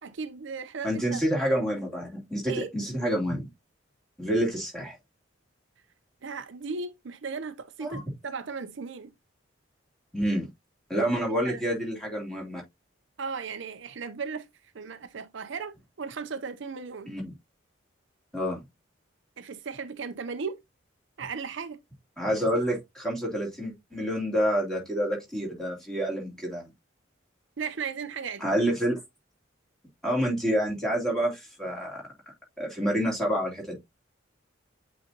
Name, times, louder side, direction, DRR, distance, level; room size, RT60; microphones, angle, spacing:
voice 1, 0.0-1.2 2.5-2.7 6.2-9.1 11.4-11.6 13.2-14.5 14.7-17.1 19.4-20.6 21.2-21.8 27.6-28.5, right 5 dB, 65° right, 0.6 m, -36 dB
voice 2, 0.8-3.4 4.2-5.0 7.8-8.0 10.1-10.5 10.9-12.6 17.1-17.3 18.3-18.6 22.2-26.7 28.4-28.9 30.0-32.0 32.6-33.8, equal, ahead, 2.9 m, -28 dB
8.2 x 4.1 x 2.8 m
head